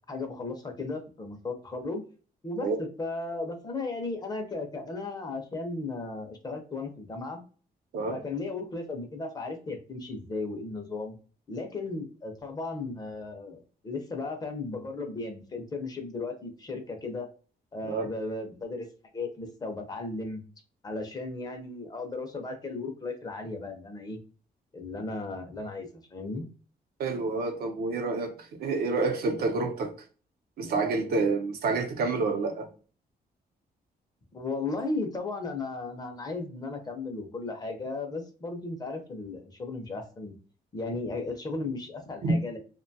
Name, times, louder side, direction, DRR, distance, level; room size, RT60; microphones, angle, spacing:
voice 1, 0.1-2.0 2.4-7.4 8.1-11.2 11.5-17.3 17.7-18.9 19.1-20.4 20.8-24.2 24.7-26.5 34.3-40.3 40.7-42.6, left 3 dB, 25° left, 0.5 m, -35 dB
voice 2, 27.0-28.3 28.6-29.9 30.6-32.7 42.2-42.3, right 3 dB, 75° right, 0.6 m, -28 dB
2.6 x 2.2 x 2.6 m
cardioid pair, 150°, 16 cm